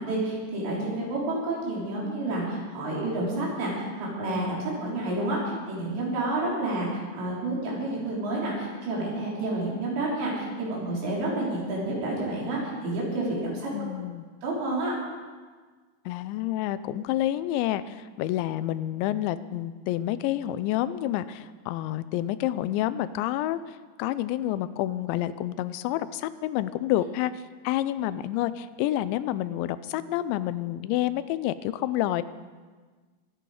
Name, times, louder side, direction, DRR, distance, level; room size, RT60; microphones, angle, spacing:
voice 1, 0.0-13.7 14.4-14.9, right 2 dB, 75° right, -4 dB, 6.0 m, -29 dB
voice 2, 13.7-14.2 16.1-32.2, left 13 dB, 90° left, 14 dB, 2.9 m, -29 dB
23.5 x 9.3 x 4.9 m, 1.4 s
omnidirectional pair, 5.1 m